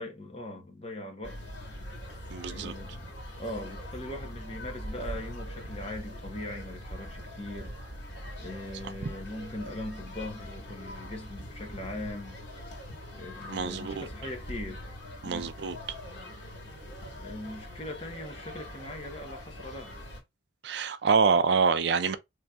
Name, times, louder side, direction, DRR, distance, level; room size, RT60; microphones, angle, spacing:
voice 1, 0.0-1.4 2.5-12.4 13.1-14.9 15.2-15.6 17.2-20.0, left 1 dB, 30° left, 1.0 m, -40 dB
sound 1, 1.2-20.2, equal, 65° left, 1.8 m, -42 dB
voice 2, 2.3-2.7 13.5-14.0 15.2-15.8 20.6-22.2, right 5 dB, 60° right, 0.4 m, -26 dB
4.1 x 3.1 x 2.3 m
head